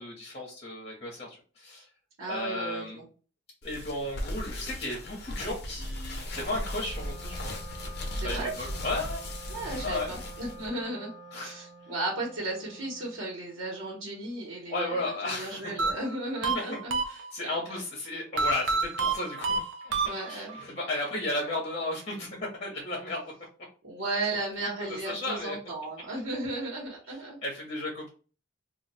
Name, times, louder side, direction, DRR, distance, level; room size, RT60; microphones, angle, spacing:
voice 1, 0.0-1.9 2.3-3.0 3.6-7.5 8.2-9.2 9.8-10.1 11.3-11.6 14.7-15.7 16.5-16.8 17.1-23.3 25.0-25.6 27.4-28.1, left 2 dB, 35° left, -2 dB, 0.9 m, -34 dB
voice 2, 2.2-3.0 8.2-8.5 9.5-11.1 11.4-17.0 17.4-17.8 18.4-18.5 20.0-20.6 23.8-27.4, right 2 dB, 90° right, -2 dB, 1.1 m, -35 dB
sound 1, 3.6-10.7, left 1 dB, 55° left, 0.6 m, -37 dB
Wind instrument woodwind instrument, 6.2-14.1, right 1 dB, 50° right, 1.0 m, -49 dB
sound 2, 15.8-17.6 18.4-20.6, right 4 dB, 65° right, 0.5 m, -29 dB
2.4 x 2.3 x 4.0 m, 0.36 s
head